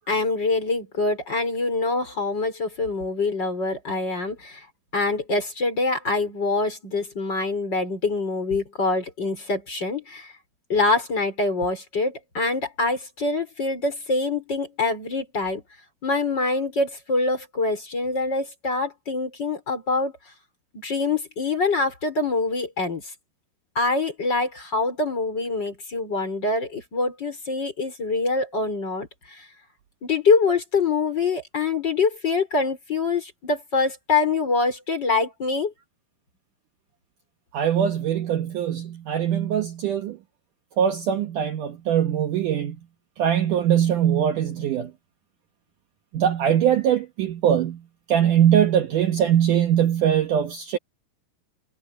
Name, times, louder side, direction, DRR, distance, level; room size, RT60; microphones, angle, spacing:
voice 1, 0.1-4.6 4.9-10.3 10.7-15.6 16.0-20.1 20.7-23.0 23.7-29.1 30.0-35.7, left 3 dB, 25° left, 5.1 m, -25 dB
voice 2, 37.5-40.2 40.8-42.8 43.2-44.9 46.1-47.8 48.1-50.8, right 9 dB, 65° right, 2.3 m, -21 dB
omnidirectional pair, 4.6 m